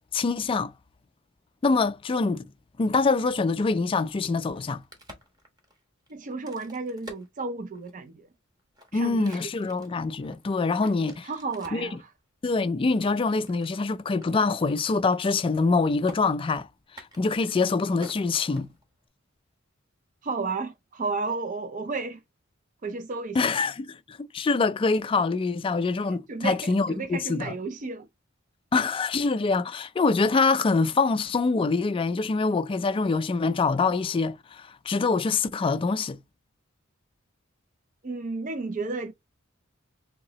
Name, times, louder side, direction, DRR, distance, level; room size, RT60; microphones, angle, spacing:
voice 1, 0.1-0.7 1.6-2.4 2.8-4.8 8.9-11.3 11.7-11.9 12.4-16.7 17.2-18.7 23.4-27.5 28.7-36.2, left 4 dB, 25° left, 0.3 m, -25 dB
Crack, 4.5-8.1 8.6-11.9 12.5-13.8 14.2-14.3 14.6-14.9 15.2-15.7 16.1-16.2 16.8-19.1, equal, 20° right, 1.1 m, -49 dB
voice 2, 6.1-8.3 8.9-9.5 10.8-10.9 11.2-12.1 20.2-22.2 22.8-23.5 26.3-28.1 38.0-39.1, right 3 dB, 40° right, 0.4 m, -33 dB
3.7 x 2.9 x 2.7 m
head